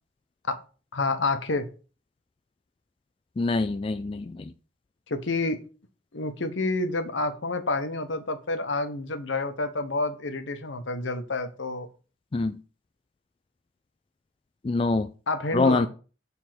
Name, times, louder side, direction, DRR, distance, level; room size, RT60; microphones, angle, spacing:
voice 1, 0.9-1.7 5.1-5.6 6.1-11.9 15.3-15.9, left 3 dB, 75° left, 1.0 m, -28 dB
voice 2, 3.4-4.4 12.3-12.6 14.6-15.1 15.5-15.9, left 3 dB, 30° left, 0.3 m, -25 dB
6.8 x 3.6 x 6.0 m
head